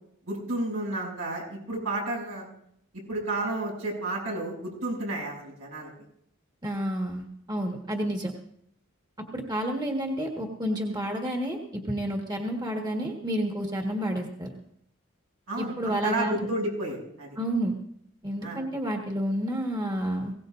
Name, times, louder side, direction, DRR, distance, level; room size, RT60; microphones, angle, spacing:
voice 1, 0.3-2.4 3.1-5.9 15.5-17.4 18.4-18.6, right 2 dB, 80° right, -1 dB, 6.8 m, -31 dB
voice 2, 6.6-8.3 9.3-14.5 15.6-16.5 17.4-17.7 18.2-20.3, equal, 20° right, 0 dB, 1.7 m, -30 dB
21.5 x 17.5 x 2.6 m, 0.71 s
head